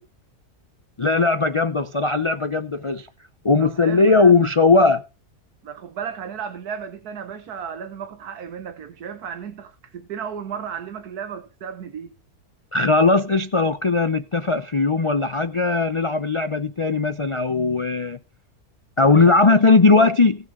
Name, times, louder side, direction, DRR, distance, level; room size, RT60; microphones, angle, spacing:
voice 1, 1.0-3.1 3.4-5.0 12.7-18.2 19.0-20.4, left 3 dB, 50° left, 0.3 m, -18 dB
voice 2, 3.6-4.4 5.6-12.1 19.0-19.6 19.9-20.1, right 7 dB, 85° right, 1.6 m, -34 dB
18.5 x 6.5 x 3.8 m
omnidirectional pair, 1.6 m